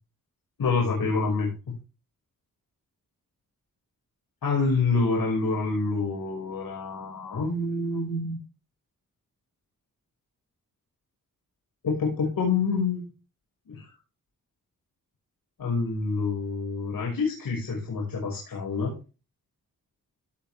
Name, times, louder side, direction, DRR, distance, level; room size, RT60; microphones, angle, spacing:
voice 1, 0.6-1.5 4.4-8.4 11.8-13.0 13.7-13.9 15.6-18.9, left 4 dB, 85° left, -2 dB, 5.6 m, -27 dB
17.0 x 8.1 x 3.4 m, 0.32 s
cardioid pair, 75°, 33 cm